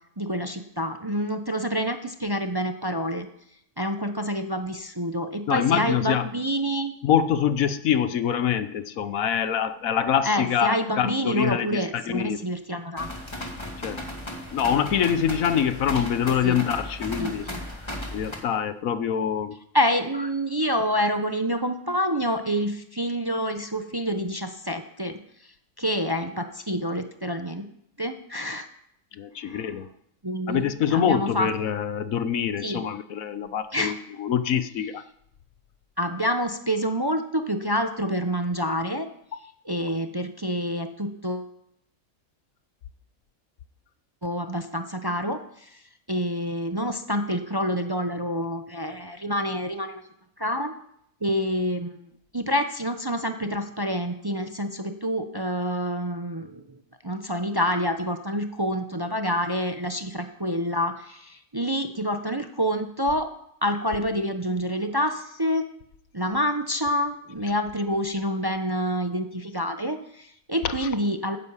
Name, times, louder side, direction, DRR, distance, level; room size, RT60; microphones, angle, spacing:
voice 1, 0.2-3.3 3.8-6.9 10.2-13.1 16.4-16.6 17.2-17.6 19.7-25.2 25.8-27.7 28.0-28.7 29.4-29.7 30.2-30.7 30.9-31.5 32.6-32.8 33.7-34.0 36.0-39.1 39.6-41.5 44.2-45.8 46.1-50.0 50.4-50.7 51.2-52.0 52.3-56.6 57.0-63.3 63.6-65.6 66.1-71.4, equal, 20° right, 7 dB, 0.7 m, -27 dB
voice 2, 5.5-6.3 7.0-12.4 13.8-14.0 14.5-17.5 18.1-19.6 29.1-29.9 30.5-35.0 70.6-70.9, left 8 dB, 75° left, 13 dB, 1.2 m, -25 dB
sound 1, 13.0-18.4, left 1 dB, 20° left, 2.2 m, -35 dB
12.5 x 9.7 x 8.2 m, 0.73 s
omnidirectional pair, 1.5 m